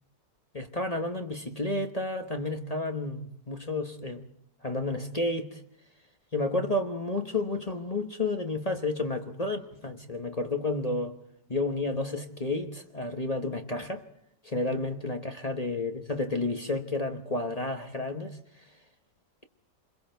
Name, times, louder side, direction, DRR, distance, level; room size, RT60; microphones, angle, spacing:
voice 1, 0.5-4.3 4.6-5.6 6.3-11.2 11.5-14.0 14.4-18.4, left 2 dB, 25° left, 1.2 m, -31 dB
28.5 x 22.0 x 4.6 m
omnidirectional pair, 1.9 m